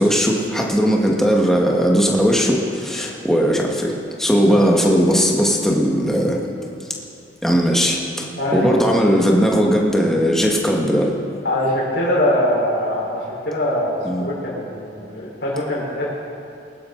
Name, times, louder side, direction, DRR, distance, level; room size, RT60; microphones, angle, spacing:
voice 1, 0.0-3.9 4.2-6.4 7.4-11.1 14.0-14.2, equal, ahead, -2 dB, 1.5 m, -18 dB
voice 2, 11.4-16.1, left 1 dB, 70° left, -6 dB, 4.3 m, -22 dB
21.5 x 12.0 x 3.9 m, 2.6 s
head